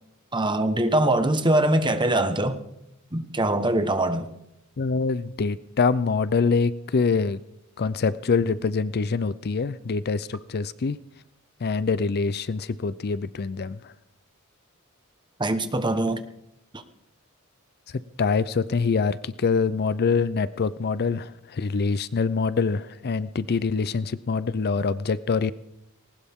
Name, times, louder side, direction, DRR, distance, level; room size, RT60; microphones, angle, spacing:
voice 1, 0.3-2.6 3.1-4.3 15.4-16.2 16.7-16.8, right 1 dB, 20° right, 9 dB, 1.2 m, -23 dB
voice 2, 4.8-7.4 7.8-11.0 11.6-13.8 18.2-25.5, left 4 dB, 45° left, 16 dB, 0.5 m, -25 dB
20.0 x 18.5 x 3.7 m, 0.83 s
head